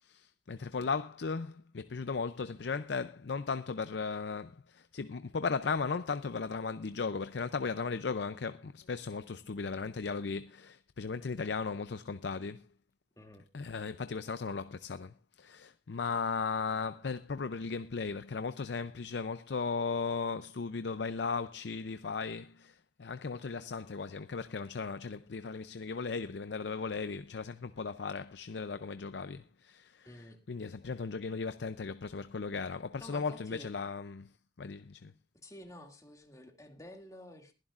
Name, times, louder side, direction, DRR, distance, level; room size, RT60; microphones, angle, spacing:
voice 1, 0.0-12.7 13.5-30.1 30.5-34.3 34.6-35.1, left 4 dB, 70° left, 0.5 m, -36 dB
voice 2, 30.0-30.8 33.0-33.7 35.4-37.5, left 1 dB, 20° left, 2.3 m, -51 dB
21.5 x 11.5 x 2.5 m
head